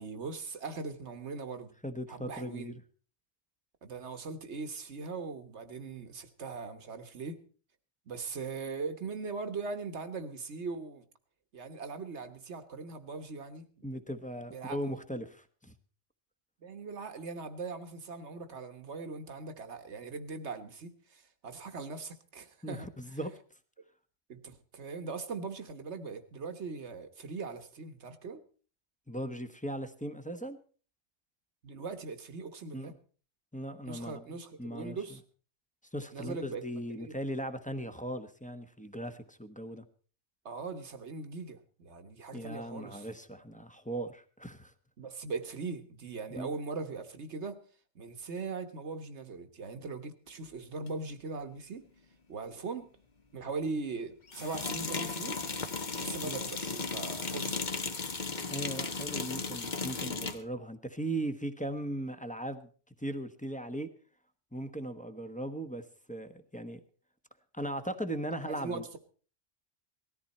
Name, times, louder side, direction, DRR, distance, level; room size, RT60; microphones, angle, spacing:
voice 1, 0.0-1.7 2.1-2.8 3.8-7.4 8.1-11.0 11.5-13.7 14.4-14.8 16.6-22.9 24.3-28.4 31.6-32.9 33.8-35.2 36.1-37.2 40.4-43.1 45.0-47.6 47.9-51.8 52.3-52.9 53.3-55.4 56.0-57.6 68.4-69.0, right 4 dB, 60° right, 9 dB, 1.6 m, -40 dB
voice 2, 1.8-2.8 13.8-15.7 22.6-23.3 29.1-30.6 32.7-32.9 33.5-34.2 34.6-35.0 35.9-39.8 42.3-44.7 46.4-46.5 56.2-56.4 58.5-62.7 63.0-63.9 64.5-65.8 66.1-66.8 67.5-69.0, right 1 dB, 5° left, 9 dB, 1.0 m, -38 dB
sound 1, 50.9-51.0 54.3-60.4, left 4 dB, 40° left, 1.2 m, -35 dB
19.0 x 14.0 x 4.3 m, 0.41 s
omnidirectional pair, 1.3 m